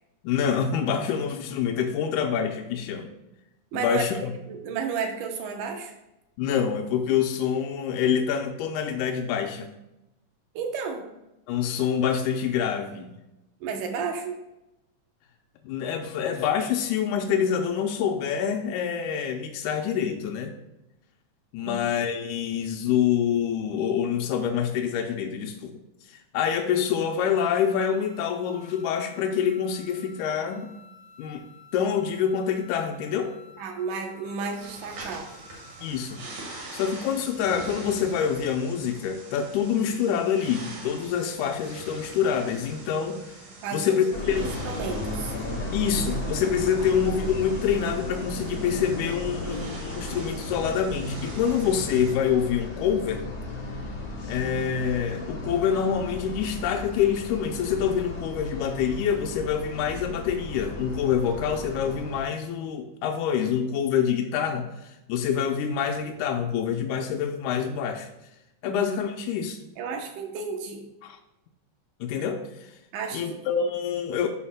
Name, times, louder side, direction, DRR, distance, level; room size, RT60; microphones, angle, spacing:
voice 1, 0.2-3.1 3.7-4.3 6.4-9.7 11.5-13.1 15.6-20.5 21.5-25.7 26.1-30.7 31.2-31.5 31.7-33.3 35.8-36.2 36.7-43.4 43.7-44.5 45.7-53.2 54.3-68.1 68.6-69.6 71.0-71.2 72.0-72.7 73.1-74.3, left 8 dB, 85° left, 3 dB, 2.0 m, -26 dB
voice 2, 3.7-5.9 10.5-11.1 13.6-14.4 21.6-21.8 33.6-35.3 43.6-45.3 46.8-46.9 68.6-68.8 69.8-70.9 72.9-73.2, right 5 dB, 85° right, 3 dB, 2.5 m, -32 dB
sound 1, 27.2-36.8, left 3 dB, 60° left, 2.0 m, -52 dB
sound 2, 34.6-52.1, right 2 dB, 60° right, 2.8 m, -42 dB
sound 3, 44.1-62.2, left 1 dB, 40° left, 1.7 m, -35 dB
11.0 x 6.4 x 2.2 m, 0.92 s
omnidirectional pair, 3.6 m